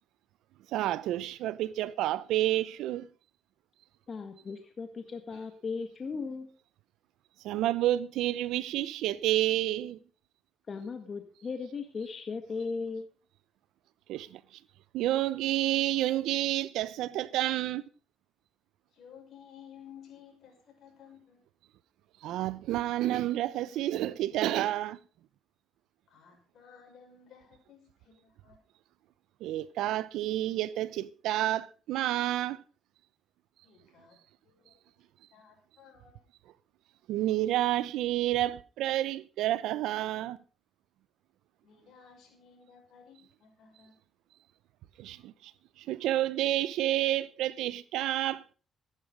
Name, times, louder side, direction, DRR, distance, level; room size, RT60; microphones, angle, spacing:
voice 1, 0.7-3.1 7.4-10.0 14.1-14.4 14.9-17.8 22.2-25.0 29.4-32.6 37.1-40.4 45.0-45.5 45.9-48.5, right 14 dB, 90° right, 0.7 m, -29 dB
voice 2, 4.1-6.5 10.7-13.1, left 4 dB, 45° left, 1.8 m, -37 dB
voice 3, 18.9-21.4 26.1-28.6 33.6-34.8 35.3-36.2 41.6-44.0, left 8 dB, 70° left, 6.0 m, -55 dB
15.0 x 11.0 x 5.2 m
cardioid pair, 90°, 0 cm